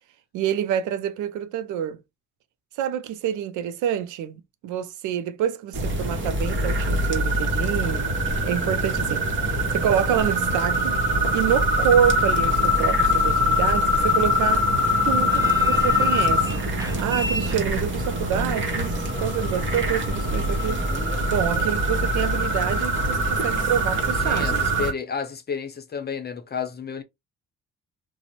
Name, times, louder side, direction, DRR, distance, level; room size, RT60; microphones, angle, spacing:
voice 1, 0.3-2.0 2.8-8.1 8.4-10.9 11.3-14.7 15.0-16.6 17.0-20.8 21.3-24.6, right 9 dB, 80° right, 0.5 m, -27 dB
sound 1, 5.7-24.9, left 1 dB, 40° right, 1.0 m, -23 dB
sound 2, 14.8-23.0, right 1 dB, 10° right, 0.8 m, -38 dB
voice 2, 24.2-27.0, left 6 dB, 35° left, 0.6 m, -31 dB
2.5 x 2.1 x 2.8 m
cardioid pair, 90°, 30 cm